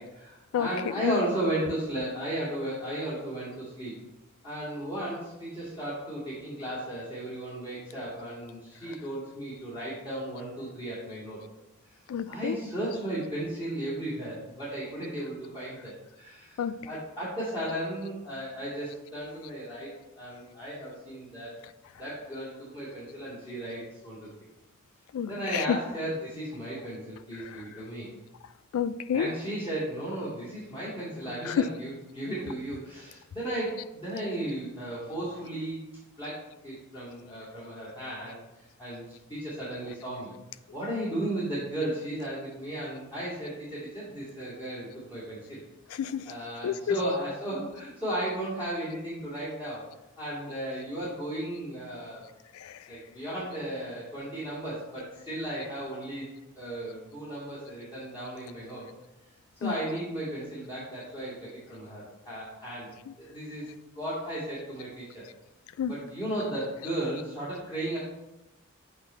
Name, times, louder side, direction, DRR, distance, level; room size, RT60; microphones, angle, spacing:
voice 1, 0.0-3.9 4.4-11.4 12.3-21.6 22.0-24.3 25.2-28.1 29.1-35.9 36.2-38.4 38.8-40.3 40.7-45.6 46.2-49.9 50.2-52.3 52.9-56.2 56.6-58.8 59.6-62.9 63.2-63.7 63.9-65.2 65.9-68.0, right 1 dB, 20° left, -10 dB, 2.1 m, -35 dB
voice 2, 0.5-1.2 12.1-12.6 16.6-16.8 25.1-25.8 27.4-27.6 28.7-29.3 31.4-31.7 45.9-46.2 46.6-47.0 52.6-52.7 59.6-59.8 63.1-63.2 65.8-65.9, left 8 dB, 80° left, 15 dB, 0.3 m, -29 dB
8.0 x 3.3 x 4.3 m, 0.93 s
head